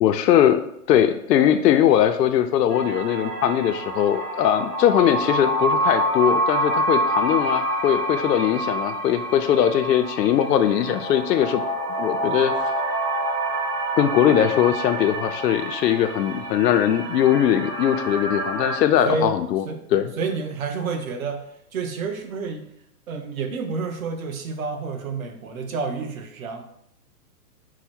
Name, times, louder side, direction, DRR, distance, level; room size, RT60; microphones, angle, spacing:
voice 1, 0.0-0.6 0.9-11.6 12.0-12.5 14.0-19.6 19.9-20.1, left 10 dB, 85° left, 8 dB, 0.6 m, -20 dB
sound 1, 2.7-18.8, right 1 dB, 85° right, 1.5 m, -27 dB
voice 2, 19.7-21.5 21.7-22.7 23.1-26.6, right 4 dB, 60° right, 6 dB, 0.7 m, -29 dB
4.8 x 2.1 x 4.3 m, 0.74 s
hypercardioid pair, 170°, 48 cm